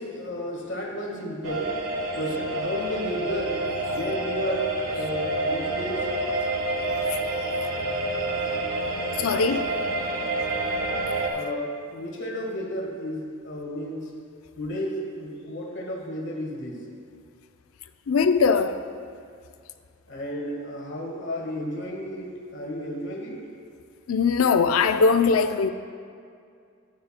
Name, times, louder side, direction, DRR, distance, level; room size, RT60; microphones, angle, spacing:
voice 1, 0.0-1.8 2.2-3.6 3.9-6.1 11.3-14.1 14.6-16.8 20.1-23.4, equal, 60° left, 1.6 m, -32 dB
sound 1, 1.4-11.3, right 2 dB, 85° right, 1.3 m, -28 dB
voice 2, 9.2-9.7 18.1-18.8 24.1-25.7, left 5 dB, 85° left, 0.5 m, -20 dB
14.0 x 9.4 x 2.2 m
head